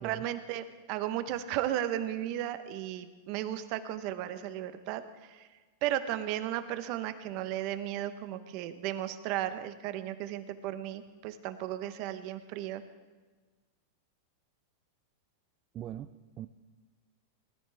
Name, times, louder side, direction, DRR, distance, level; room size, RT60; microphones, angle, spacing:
voice 1, 0.0-5.5 5.8-12.8, right 12 dB, 50° right, 10 dB, 1.0 m, -35 dB
voice 2, 15.7-16.5, right 11 dB, 30° right, 9 dB, 0.4 m, -41 dB
19.5 x 13.5 x 3.5 m, 1.4 s
supercardioid pair, 135°, 0 cm